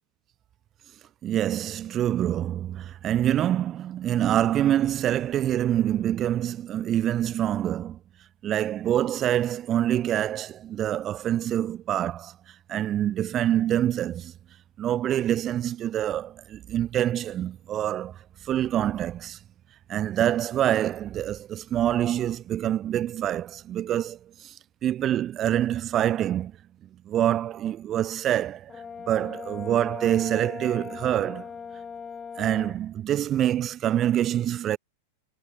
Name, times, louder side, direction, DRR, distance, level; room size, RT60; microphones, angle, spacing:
voice 1, 1.2-8.0 8.4-12.3 12.7-14.3 14.8-18.2 18.4-19.4 19.9-24.5 24.8-26.5 27.1-28.7 29.1-31.5 32.4-34.8, right 11 dB, 30° right, 0.5 m, -26 dB
Brass instrument, 28.7-32.8, left 6 dB, 20° left, 1.7 m, -39 dB
figure-of-eight pair, 90°, 0 cm